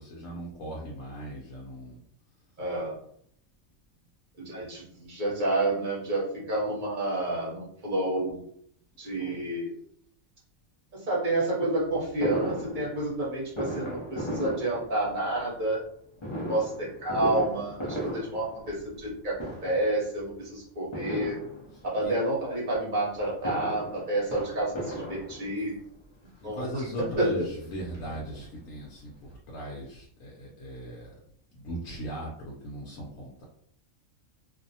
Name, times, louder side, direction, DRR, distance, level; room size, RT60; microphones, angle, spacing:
voice 1, 0.0-2.0 21.7-22.1 26.4-31.1 31.5-33.4, equal, 75° left, -3 dB, 1.0 m, -38 dB
voice 2, 2.6-3.0 4.4-8.4 9.0-9.7 10.9-15.8 16.5-21.4 21.8-25.7 26.4-26.7 27.2-27.3, right 1 dB, 40° right, -4 dB, 0.9 m, -29 dB
Fireworks, 12.2-15.4 16.2-19.1 19.3-20.0 20.9-22.0 23.2-25.8 26.6-26.7 27.0-27.1 27.4-28.7 29.0-29.1 29.2-29.3, right 1 dB, 50° left, 0.3 m, -36 dB
2.6 x 2.0 x 2.7 m, 0.67 s
omnidirectional pair, 1.5 m